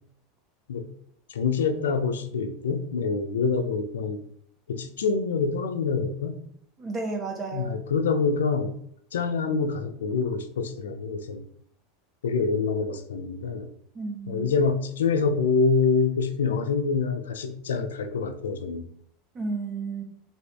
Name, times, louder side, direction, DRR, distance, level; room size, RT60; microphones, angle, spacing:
voice 1, 1.3-4.2 4.7-6.4 7.5-8.7 9.1-11.4 12.2-13.7 14.3-18.9, left 5 dB, 85° left, 8 dB, 0.4 m, -26 dB
voice 2, 6.8-7.7 13.9-14.5 19.3-20.0, right 3 dB, 30° right, 3 dB, 0.8 m, -32 dB
2.6 x 2.4 x 3.4 m, 0.67 s
hypercardioid pair, 95°, 0 cm